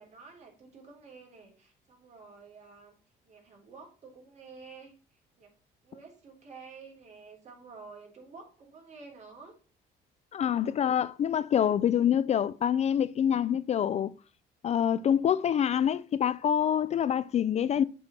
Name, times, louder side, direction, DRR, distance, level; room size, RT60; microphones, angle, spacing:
voice 1, 0.0-3.0 3.2-4.9 5.4-5.5 5.8-9.6, right 4 dB, 45° right, 3.7 m, -50 dB
voice 2, 10.3-14.1 14.6-17.8, left 9 dB, 40° left, 0.4 m, -26 dB
7.7 x 4.4 x 5.7 m
cardioid pair, 110°, 17 cm